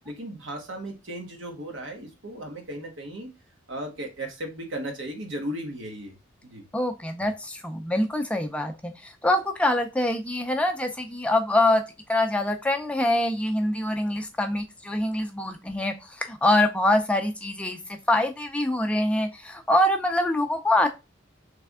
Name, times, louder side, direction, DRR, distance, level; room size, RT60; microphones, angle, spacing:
voice 1, 0.0-3.3 3.7-6.1 6.4-6.6, right 1 dB, 80° right, 1.2 m, -36 dB
voice 2, 6.7-11.8 12.1-20.9, left 1 dB, 5° left, 0.4 m, -24 dB
3.3 x 3.3 x 3.5 m
head